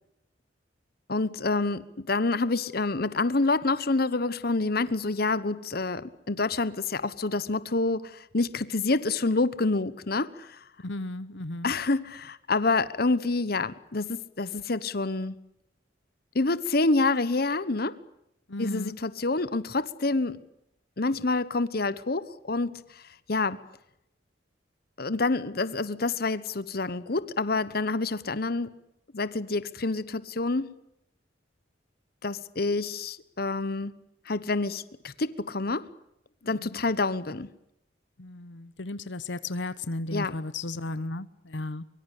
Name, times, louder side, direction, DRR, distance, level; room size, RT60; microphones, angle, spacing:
voice 1, 1.1-10.6 11.6-15.3 16.3-18.0 18.6-20.4 21.0-22.8 23.3-23.6 25.0-28.7 29.1-30.7 32.2-33.9 34.3-35.9 36.5-37.5 40.1-40.3, left 3 dB, 55° left, 1.1 m, -27 dB
voice 2, 10.8-11.7 18.5-19.0 36.4-36.8 38.2-41.8, left 2 dB, 80° left, 1.1 m, -35 dB
24.5 x 23.5 x 8.4 m
head